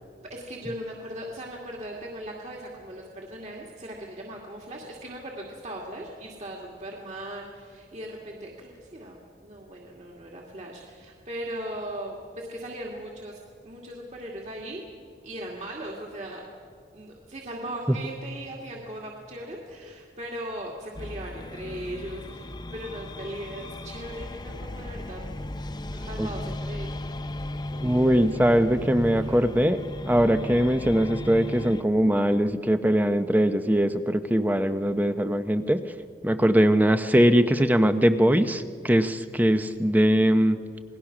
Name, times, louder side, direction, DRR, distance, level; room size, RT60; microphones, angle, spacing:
voice 1, 0.2-14.8 15.2-16.4 16.9-25.2 25.9-27.0 27.7-27.9 28.2-28.4 29.1-29.4, right 1 dB, 40° right, -1 dB, 2.4 m, -38 dB
sound 1, 20.9-31.8, left 1 dB, 25° left, 0.7 m, -36 dB
voice 2, 27.8-29.8 30.1-35.8 36.2-40.6, equal, 10° right, 9 dB, 0.7 m, -21 dB
28.0 x 20.0 x 6.0 m, 2.2 s
head